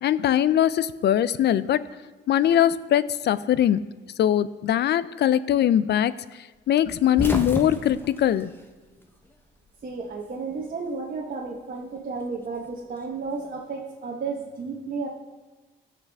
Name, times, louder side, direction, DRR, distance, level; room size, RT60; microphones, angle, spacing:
voice 1, 0.0-1.9 2.3-3.8 4.2-8.5, left 11 dB, 60° left, 17 dB, 0.5 m, -22 dB
sound 1, 6.8-9.4 9.7-10.7 11.9-13.4, left 1 dB, 10° left, 1.0 m, -33 dB
voice 2, 9.8-15.1, right 4 dB, 45° right, -1 dB, 1.2 m, -33 dB
15.5 x 5.9 x 3.5 m, 1.3 s
cardioid pair, 90°, 20 cm